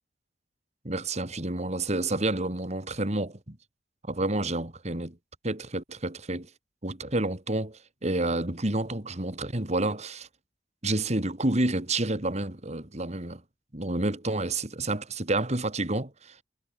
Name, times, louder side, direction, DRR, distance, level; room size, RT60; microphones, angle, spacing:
voice 1, 0.8-3.6 4.1-5.2 5.4-6.5 6.8-10.3 10.8-13.4 13.7-16.4, right 2 dB, 40° right, 2.5 m, -29 dB
head